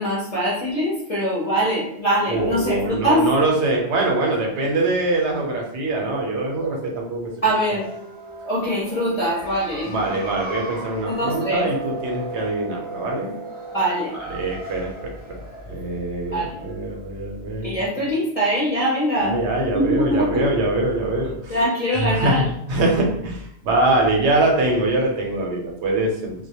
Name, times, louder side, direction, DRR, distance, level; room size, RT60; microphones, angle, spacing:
voice 1, 0.0-3.3 7.4-7.9 8.4-9.9 11.1-11.7 13.7-14.1 16.3-16.7 17.6-19.4 19.7-20.5 21.5-22.4, equal, 45° left, -6 dB, 0.5 m, -22 dB
voice 2, 2.3-7.3 9.8-13.3 14.1-15.1 15.7-17.8 19.2-21.6 22.0-22.4 22.7-26.3, right 2 dB, 75° right, 0 dB, 0.9 m, -23 dB
sound 1, 7.6-17.0, right 2 dB, 10° right, 0.6 m, -36 dB
2.2 x 2.1 x 2.8 m, 0.77 s
omnidirectional pair, 1.2 m